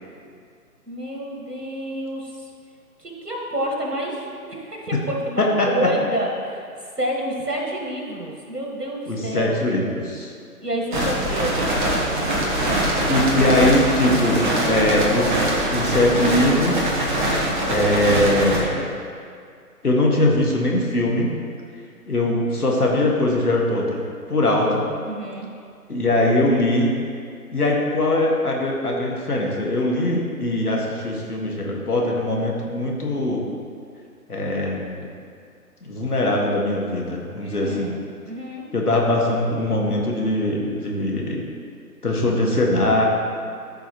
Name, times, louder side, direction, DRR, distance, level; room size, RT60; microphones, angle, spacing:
voice 1, 0.9-2.5 3.0-6.7 7.0-9.5 10.6-12.2 25.1-25.5 37.4-38.7, right 1 dB, 85° right, -1 dB, 1.8 m, -29 dB
voice 2, 5.4-5.7 9.1-10.3 13.1-15.4 15.7-16.9 17.7-18.9 19.8-21.4 22.1-24.0 24.3-24.9 25.9-27.0 27.5-33.5 34.3-35.1 35.8-38.0 38.7-41.4 42.0-43.0, left 1 dB, 75° left, -2 dB, 1.8 m, -21 dB
sound 1, 10.9-18.6, right 1 dB, 30° right, 1.3 m, -23 dB
13.5 x 5.6 x 3.0 m, 2.2 s
figure-of-eight pair, 140°, 46 cm